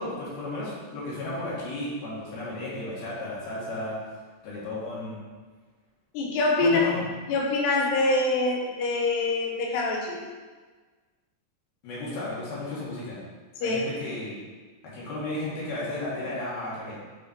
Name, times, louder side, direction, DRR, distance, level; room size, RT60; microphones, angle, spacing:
voice 1, 0.0-4.0 4.4-5.2 6.6-7.0 11.8-13.2 13.6-14.4 14.9-17.0, left 2 dB, 70° left, -7 dB, 4.1 m, -33 dB
voice 2, 6.1-6.8 7.3-10.2 13.6-13.8, left 2 dB, 85° left, -1 dB, 3.4 m, -25 dB
9.0 x 5.0 x 4.6 m, 1.4 s
omnidirectional pair, 4.7 m